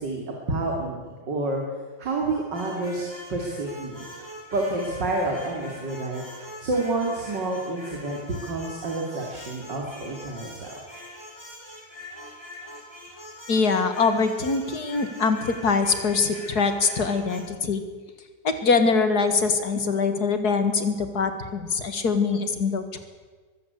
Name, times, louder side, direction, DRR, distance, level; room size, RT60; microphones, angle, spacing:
voice 1, 0.0-1.6 2.0-4.1 4.5-10.7, right 2 dB, 65° right, 0 dB, 3.4 m, -29 dB
sound 1, 2.5-17.4, left 1 dB, 10° left, 4.8 m, -43 dB
voice 2, 13.5-17.8 18.4-23.0, left 4 dB, 55° left, 8 dB, 2.3 m, -23 dB
23.0 x 15.5 x 8.2 m, 1.4 s
omnidirectional pair, 2.0 m